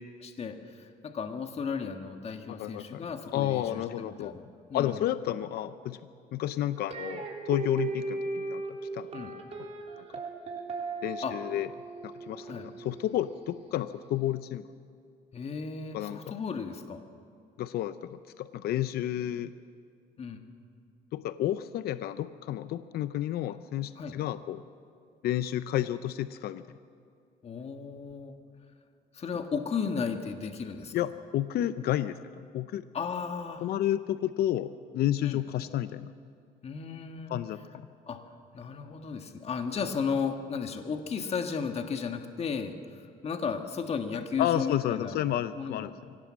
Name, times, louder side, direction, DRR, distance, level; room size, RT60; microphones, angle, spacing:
voice 1, 0.2-5.0 9.1-9.3 11.2-11.4 12.4-12.7 15.3-17.0 20.2-20.4 24.0-24.1 27.4-28.4 29.1-30.9 32.9-33.7 35.2-35.4 36.6-37.3 38.1-38.2 38.5-45.2 45.6-45.9, left 6 dB, 40° left, 6 dB, 1.6 m, -34 dB
voice 2, 2.5-3.0 3.3-4.4 4.7-6.0 6.3-8.6 8.9-9.3 9.6-9.7 11.0-11.7 12.0-14.6 15.9-16.3 17.6-19.5 21.1-24.6 25.2-26.6 30.9-32.8 33.6-36.1 37.3-37.6 44.4-45.9, left 12 dB, 65° left, 13 dB, 0.7 m, -31 dB
sound 1, 6.9-14.0, right 3 dB, 40° right, 3.6 m, -38 dB
24.5 x 17.5 x 7.6 m, 2.4 s
cardioid pair, 110°, 17 cm